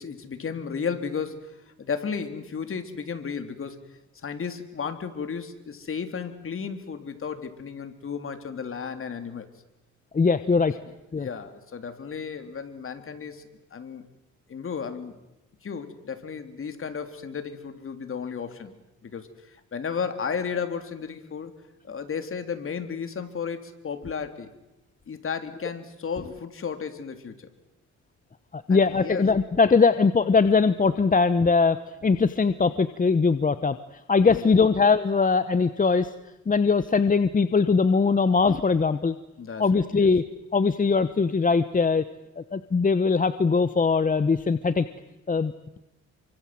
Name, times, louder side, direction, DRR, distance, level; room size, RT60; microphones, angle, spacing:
voice 1, 0.0-3.8 4.2-9.5 11.2-14.1 14.5-15.2 15.6-21.5 21.8-24.5 25.1-27.5 28.7-29.2 34.3-34.5 39.4-40.1, left 6 dB, 45° left, 7 dB, 3.5 m, -34 dB
voice 2, 10.1-10.7 11.1-11.3 28.5-31.8 32.0-36.1 36.5-39.1 39.6-40.2 40.5-42.0 42.4-44.9 45.3-45.8, left 4 dB, 25° left, 12 dB, 1.1 m, -21 dB
28.5 x 24.5 x 7.7 m, 0.94 s
cardioid pair, 90°, 30 cm